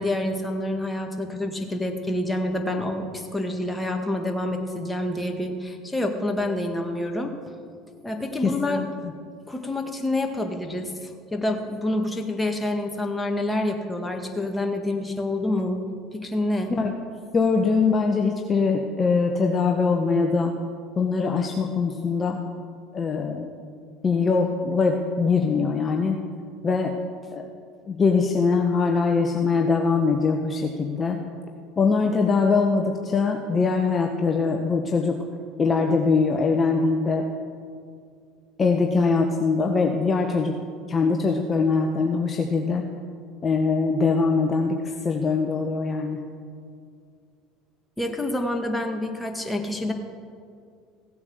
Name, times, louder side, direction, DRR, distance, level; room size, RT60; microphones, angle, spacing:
voice 1, 0.0-7.4 8.0-8.8 9.5-15.8 16.1-16.7 48.0-49.9, left 1 dB, 10° left, 3 dB, 1.9 m, -27 dB
voice 2, 8.4-9.1 16.7-16.9 17.3-20.5 21.0-22.4 22.9-23.5 24.0-26.2 26.6-26.9 27.3-27.5 27.9-31.2 31.8-35.2 35.6-37.3 38.6-40.5 40.9-42.8 43.4-46.2, left 4 dB, 30° left, 3 dB, 1.1 m, -22 dB
16.5 x 8.5 x 6.6 m, 2.2 s
hypercardioid pair, 75°, 0 cm